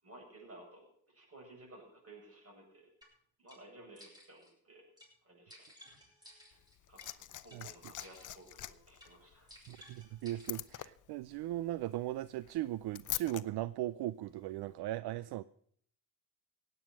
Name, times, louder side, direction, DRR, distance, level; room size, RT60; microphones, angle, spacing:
voice 1, 0.0-2.8 3.4-4.8 5.2-5.5 6.9-9.5, right 1 dB, 35° right, 0 dB, 7.9 m, -56 dB
sound 1, 3.0-3.1 3.5-3.6 3.9-4.5 5.0-5.1 5.5-7.1 7.5-7.6 8.0-8.5 8.9-9.1 9.5-10.8, equal, 10° right, 6.3 m, -58 dB
Liquid, 6.5-13.4 14.5-14.6, left 12 dB, 50° left, 0.7 m, -45 dB
voice 2, 9.7-15.4, right 14 dB, 70° right, 17 dB, 0.5 m, -38 dB
16.5 x 9.2 x 6.2 m, 0.62 s
cardioid pair, 100°, 40 cm